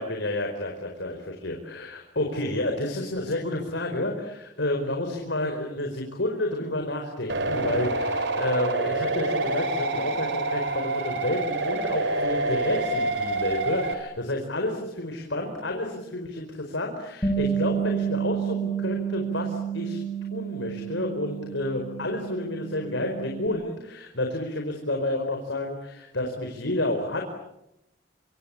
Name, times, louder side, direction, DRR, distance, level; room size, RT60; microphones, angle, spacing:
voice 1, 0.0-20.0 20.3-27.2, left 1 dB, 75° left, 3 dB, 4.8 m, -30 dB
sound 1, 7.3-13.9, right 2 dB, 70° right, 4.6 m, -27 dB
Bass guitar, 17.2-23.5, right 7 dB, 20° left, 3.1 m, -30 dB
26.5 x 26.5 x 8.5 m, 0.87 s
head